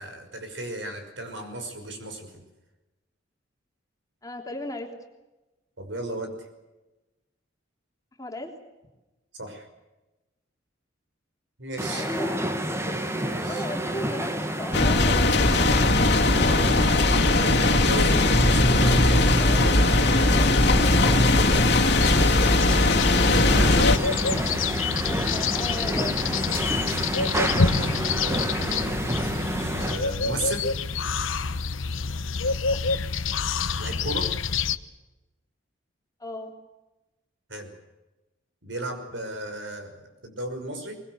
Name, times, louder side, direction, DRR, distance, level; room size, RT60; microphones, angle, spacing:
voice 1, 0.0-2.3 5.8-6.3 9.3-9.7 11.6-12.1 13.1-13.6 16.4-19.5 21.8-24.0 27.7-29.0 29.8-30.7 33.8-34.3 37.5-37.7 38.6-41.0, right 1 dB, 70° right, 6 dB, 5.9 m, -35 dB
voice 2, 4.2-4.9 8.2-8.5 11.9-12.4 12.9-15.9 19.4-19.7 20.0-21.6 24.3-26.7 32.7-32.8 36.2-36.5, left 1 dB, 20° left, 2 dB, 3.3 m, -37 dB
sound 1, 11.8-30.0, right 1 dB, 15° right, 1.7 m, -29 dB
sound 2, 14.7-24.0, left 2 dB, 55° left, 2.4 m, -19 dB
sound 3, 21.9-34.8, left 5 dB, 90° left, 1.0 m, -27 dB
24.0 x 21.0 x 8.0 m, 1.1 s
head